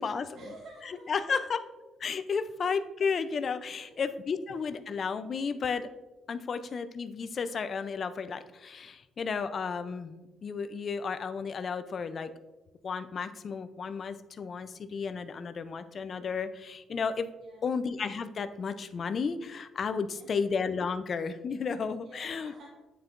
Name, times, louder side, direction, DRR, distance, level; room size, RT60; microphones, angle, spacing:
voice 1, 0.0-1.4 2.3-2.6 3.7-4.0 4.3-4.4 17.4-17.8 20.0-20.4 22.0-22.8, right 2 dB, 70° right, -1 dB, 0.9 m, -51 dB
voice 2, 1.1-1.6 2.0-5.9 6.3-12.3 12.8-17.3 17.6-22.5, left 5 dB, 50° left, 12 dB, 0.4 m, -33 dB
9.1 x 4.4 x 2.5 m, 1.1 s
cardioid pair, 90°, 0 cm